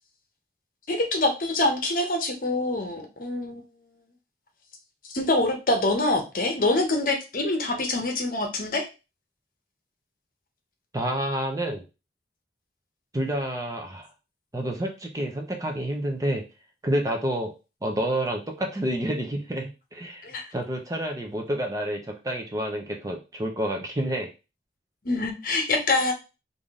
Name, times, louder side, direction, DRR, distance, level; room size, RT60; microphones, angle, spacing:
voice 1, 0.9-3.6 5.1-8.9 20.2-20.5 25.0-26.1, left 2 dB, 50° left, 3 dB, 0.8 m, -25 dB
voice 2, 10.9-11.8 13.1-14.1 14.5-16.4 16.8-17.5 17.8-24.3, right 1 dB, 20° right, 2 dB, 0.6 m, -29 dB
3.5 x 2.6 x 3.6 m, 0.29 s
head